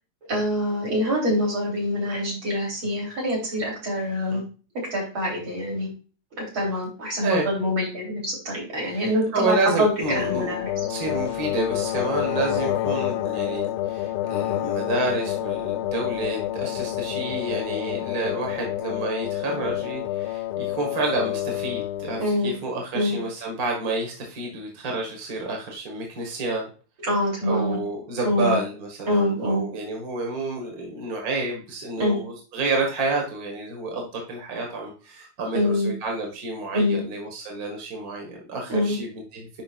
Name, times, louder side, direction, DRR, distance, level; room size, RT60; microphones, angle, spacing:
voice 1, 0.3-4.4 4.9-5.9 6.4-9.9 10.2-10.7 22.2-22.5 22.9-23.2 27.1-27.8 28.2-28.6 29.1-29.6 32.0-32.2 35.5-35.9 36.7-37.0 38.7-39.0, left 1 dB, 70° right, -3 dB, 4.3 m, -25 dB
voice 2, 8.8-10.5 10.9-26.7 27.4-39.6, right 2 dB, 45° right, 0 dB, 1.9 m, -29 dB
sound 1, 10.0-22.3, left 13 dB, 85° left, 1.4 m, -28 dB
10.5 x 5.3 x 2.4 m, 0.37 s
omnidirectional pair, 2.3 m